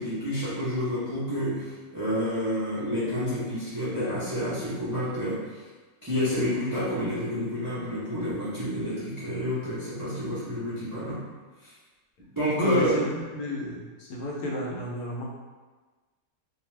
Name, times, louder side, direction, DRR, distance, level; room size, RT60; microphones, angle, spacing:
voice 1, 0.0-5.6 6.0-11.2 11.6-11.7 12.2-12.9, equal, 30° right, -11 dB, 0.3 m, -29 dB
voice 2, 12.6-15.2, left 1 dB, 70° left, -3 dB, 1.0 m, -30 dB
2.6 x 2.3 x 3.1 m, 1.3 s
omnidirectional pair, 1.7 m